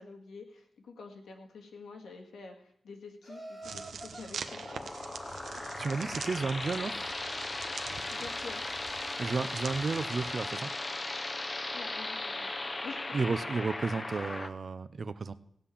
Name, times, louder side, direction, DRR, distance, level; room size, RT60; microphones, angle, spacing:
voice 1, 0.0-4.9 8.1-8.6 11.7-13.2, left 4 dB, 85° left, 2 dB, 2.0 m, -48 dB
Laughter, 3.2-6.4, right 2 dB, 10° right, 1.7 m, -50 dB
sound 1, 3.6-10.4, right 6 dB, 70° right, 1.0 m, -45 dB
sound 2, 4.5-14.5, left 2 dB, 25° left, 0.7 m, -37 dB
voice 2, 5.8-7.0 9.2-10.7 13.1-15.3, right 4 dB, 40° right, 14 dB, 0.7 m, -32 dB
16.5 x 5.8 x 8.5 m, 0.68 s
wide cardioid pair, 140°, 0 cm